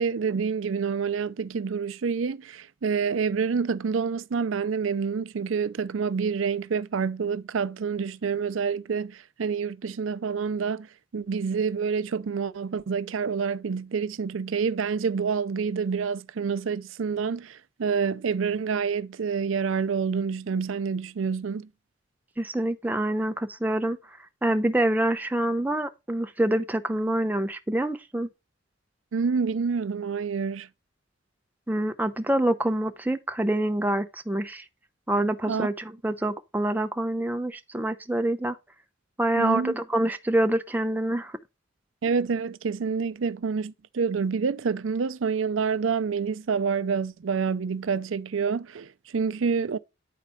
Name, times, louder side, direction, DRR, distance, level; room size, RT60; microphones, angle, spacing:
voice 1, 0.0-10.9 11.1-21.7 29.1-30.7 35.5-35.7 39.4-39.7 42.0-49.8, right 5 dB, 85° right, 0.5 m, -27 dB
voice 2, 22.4-24.0 24.4-28.3 31.7-34.6 35.1-38.6 39.2-41.4, right 1 dB, 10° right, 0.7 m, -26 dB
10.0 x 4.2 x 5.0 m
head